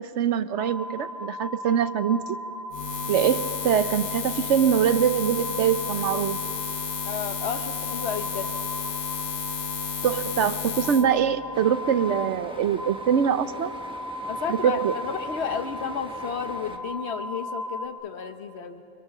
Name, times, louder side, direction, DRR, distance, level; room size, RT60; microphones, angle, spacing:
voice 1, 0.0-2.4 3.1-6.4 10.0-13.7 14.5-14.9, right 8 dB, 65° right, 13 dB, 1.1 m, -23 dB
sound 1, 0.6-17.9, left 1 dB, 15° left, 1.6 m, -37 dB
Buzz, 2.7-11.0, left 6 dB, 85° left, 1.5 m, -32 dB
voice 2, 7.0-8.6 14.3-18.8, left 6 dB, 55° left, 8 dB, 1.4 m, -32 dB
sound 2, 11.5-16.8, equal, 5° right, 1.2 m, -43 dB
28.5 x 25.5 x 6.0 m, 2.6 s
omnidirectional pair, 1.3 m